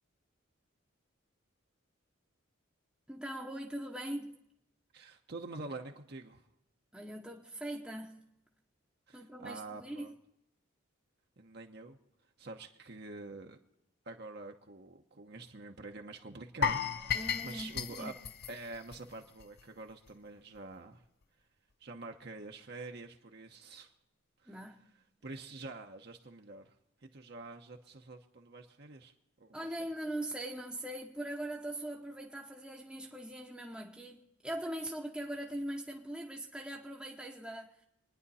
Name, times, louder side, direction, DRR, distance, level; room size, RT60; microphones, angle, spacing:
voice 1, 3.1-4.4 6.9-8.3 9.1-10.1 17.1-18.1 24.5-24.8 29.5-37.9, right 1 dB, 5° right, 0.9 m, -41 dB
voice 2, 4.9-6.5 9.1-10.1 11.4-12.0 12.4-13.6 14.1-18.1 18.5-21.0 21.8-23.9 24.4-24.6 25.2-26.7 27.0-29.1 29.4-29.6, right 3 dB, 50° right, 0.9 m, -47 dB
sound 1, 16.6-19.6 19.9-20.1 20.5-20.6, left 6 dB, 50° left, 0.7 m, -35 dB
26.5 x 10.0 x 4.2 m
head